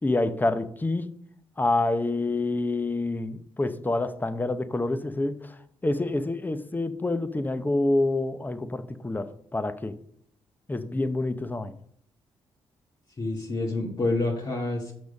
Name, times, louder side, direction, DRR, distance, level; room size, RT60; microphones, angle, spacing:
voice 1, 0.0-1.1 1.6-10.0 10.7-11.8, left 2 dB, 15° left, 11 dB, 0.8 m, -27 dB
voice 2, 13.2-14.9, left 2 dB, 40° left, -2 dB, 1.6 m, -28 dB
7.1 x 6.1 x 5.2 m, 0.66 s
supercardioid pair, 65°, 11 cm